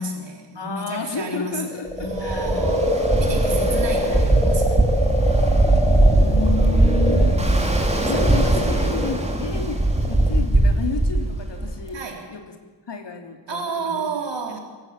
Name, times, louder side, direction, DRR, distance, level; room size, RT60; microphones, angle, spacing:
voice 1, 0.0-4.8 7.0-8.7 11.9-12.3 13.5-14.6, right 3 dB, 80° right, 1 dB, 4.1 m, -32 dB
voice 2, 0.5-2.6 3.6-4.1 5.8-7.5 8.1-12.0 12.3-12.4 12.9-14.0, left 5 dB, 75° left, 4 dB, 3.1 m, -31 dB
sound 1, 1.6-10.4, left 1 dB, 10° left, 4.4 m, -26 dB
Ocean, 2.0-11.9, right 2 dB, 15° right, 2.8 m, -20 dB
24.5 x 15.5 x 7.5 m, 1.3 s
wide cardioid pair, 85°, 43 cm